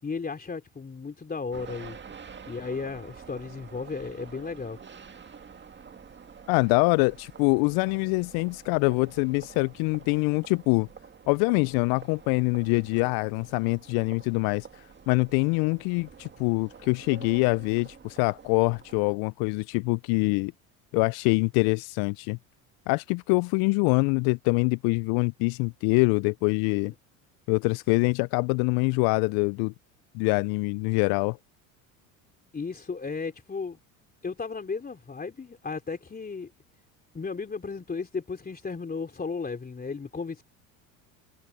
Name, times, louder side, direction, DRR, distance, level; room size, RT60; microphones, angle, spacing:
voice 1, 0.0-2.0 2.5-4.8 32.5-33.8 34.2-36.5 37.1-40.4, left 4 dB, 20° left, 3.3 m, -34 dB
sound 1, 1.5-19.2, right 6 dB, 25° right, 2.0 m, -48 dB
voice 2, 6.5-10.9 11.3-14.7 15.1-20.5 20.9-22.4 22.9-26.9 27.5-29.7 30.1-31.4, left 30 dB, 60° left, 0.6 m, -24 dB
hypercardioid pair, 80°, 42 cm